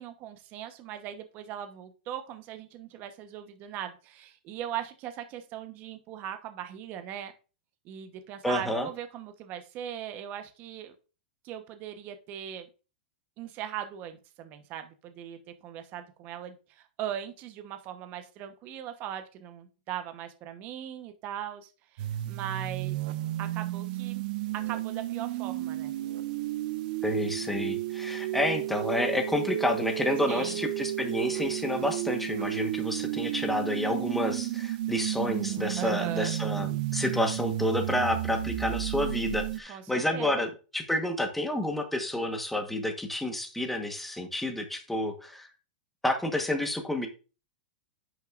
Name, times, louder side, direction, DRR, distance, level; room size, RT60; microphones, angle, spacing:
voice 1, 0.0-7.3 7.8-10.9 11.4-12.7 13.4-23.0 23.4-24.2 24.7-25.9 30.3-30.6 35.8-36.3 39.7-40.3, right 10 dB, 35° right, 8 dB, 1.0 m, -39 dB
voice 2, 8.4-8.9 27.0-45.5 46.0-47.1, left 1 dB, 5° left, 4 dB, 1.3 m, -29 dB
sound 1, 22.0-39.6, right 14 dB, 55° right, 0.6 m, -32 dB
10.0 x 6.4 x 2.5 m, 0.34 s
hypercardioid pair, 145°, 5 cm